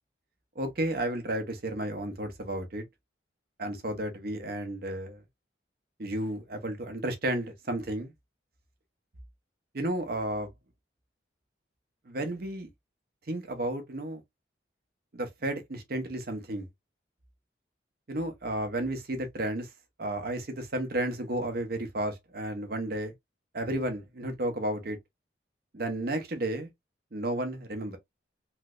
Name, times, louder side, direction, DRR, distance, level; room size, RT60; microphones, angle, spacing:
voice 1, 0.6-2.8 3.6-5.2 6.0-8.1 9.7-10.5 12.1-12.7 13.3-14.2 15.1-16.7 18.1-19.7 20.0-23.1 23.5-25.0 25.7-26.7 27.1-28.0, right 1 dB, 55° right, 0.9 m, -32 dB
3.2 x 3.1 x 2.3 m
head